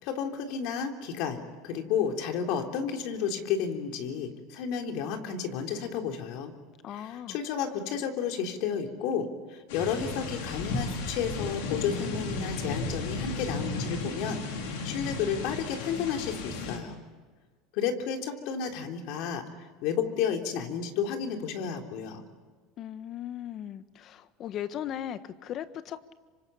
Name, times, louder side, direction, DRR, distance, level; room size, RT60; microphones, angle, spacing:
voice 1, 0.0-6.5 6.9-17.0 17.7-19.4 19.8-22.2, left 7 dB, 65° left, 4 dB, 3.6 m, -32 dB
voice 2, 6.8-7.4 22.8-26.1, left 10 dB, 45° left, 12 dB, 1.4 m, -38 dB
sound 1, 9.7-16.8, left 3 dB, 85° left, 5.3 m, -34 dB
27.0 x 25.0 x 8.5 m, 1.4 s
supercardioid pair, 115°, 0 cm